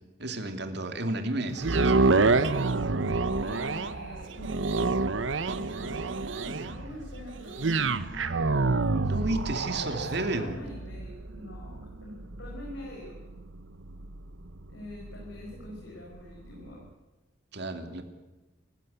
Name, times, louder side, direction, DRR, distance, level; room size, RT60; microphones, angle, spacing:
voice 1, 0.2-2.4 8.9-10.6 17.5-18.0, right 2 dB, 60° right, 6 dB, 2.7 m, -32 dB
sound 1, 1.6-15.8 16.3-16.4, right 3 dB, 80° right, 1.0 m, -28 dB
voice 2, 3.3-5.0 5.5-9.3 9.8-13.2 14.7-16.8, left 1 dB, 70° left, -2 dB, 5.7 m, -44 dB
28.5 x 16.0 x 8.2 m, 1.1 s
head